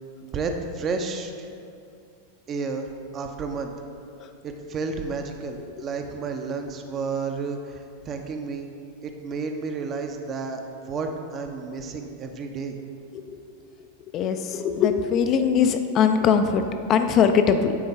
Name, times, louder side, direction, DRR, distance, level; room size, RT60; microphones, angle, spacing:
voice 1, 0.2-1.5 2.5-2.9 3.1-3.7 4.4-8.7 9.0-10.6 10.9-12.8, right 4 dB, 30° right, 5 dB, 0.5 m, -31 dB
voice 2, 13.1-13.6 14.0-17.7, left 7 dB, 35° left, 7 dB, 0.3 m, -21 dB
9.2 x 3.8 x 3.9 m, 2.4 s
figure-of-eight pair, 90°, 0 cm